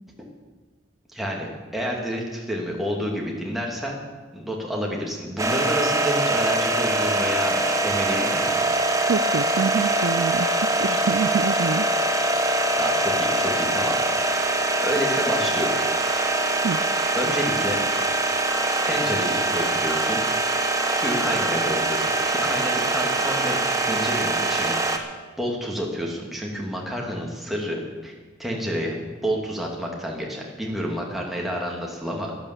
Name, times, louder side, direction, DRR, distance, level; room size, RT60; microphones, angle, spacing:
voice 1, 1.1-4.0 4.3-8.5 12.8-15.7 17.2-17.8 18.8-20.2 20.9-23.6 23.8-24.8 25.4-28.1 28.4-29.0 29.2-32.4, equal, ahead, -2 dB, 2.3 m, -29 dB
sound 1, 5.4-25.0, right 2 dB, 15° right, 1.0 m, -23 dB
voice 2, 9.1-10.5 10.8-11.8 16.6-16.8, right 5 dB, 70° right, 15 dB, 0.4 m, -26 dB
12.0 x 11.0 x 7.2 m, 1.3 s
head